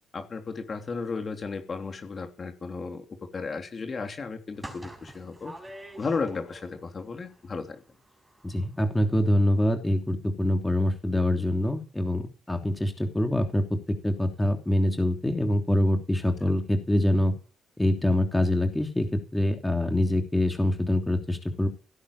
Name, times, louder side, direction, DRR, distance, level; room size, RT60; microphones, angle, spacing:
voice 1, 0.1-3.1 3.3-5.5 6.0-7.8, left 4 dB, 40° left, 6 dB, 3.1 m, -34 dB
sound 1, 4.5-7.0 7.2-8.8 9.1-9.2 9.5-9.6, right 1 dB, 10° right, 5.1 m, -45 dB
voice 2, 8.4-17.4 17.8-21.7, left 1 dB, 10° left, 5 dB, 3.1 m, -25 dB
17.0 x 9.8 x 8.6 m, 0.37 s
cardioid pair, 90°, 0 cm